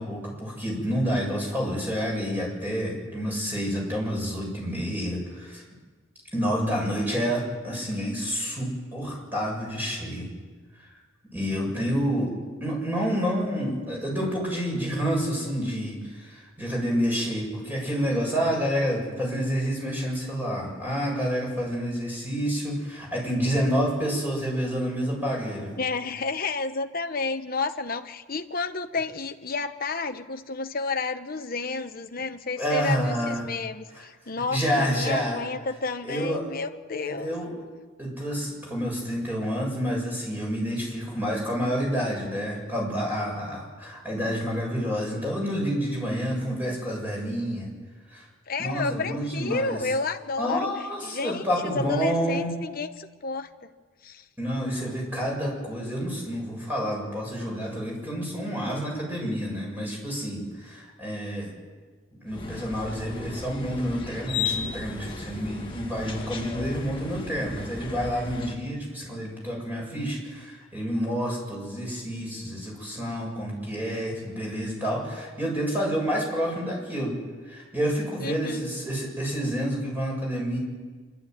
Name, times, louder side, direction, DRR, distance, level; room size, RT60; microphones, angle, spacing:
voice 1, 0.0-5.6 6.3-10.3 10.8-10.9 11.3-12.3 12.6-25.8 32.6-33.4 34.5-35.4 36.0-36.6 37.0-37.5 38.0-47.7 48.1-48.3 48.6-49.8 50.4-52.6 54.4-61.5 62.1-77.1 77.5-80.6, equal, 10° right, -2 dB, 7.8 m, -29 dB
voice 2, 25.8-37.3 48.5-50.7 51.0-53.7 54.0-54.2 78.2-78.7, left 4 dB, 45° left, 7 dB, 1.1 m, -31 dB
sound 1, 62.3-68.5, left 5 dB, 25° left, 1.9 m, -35 dB
26.5 x 12.5 x 9.5 m, 1.4 s
head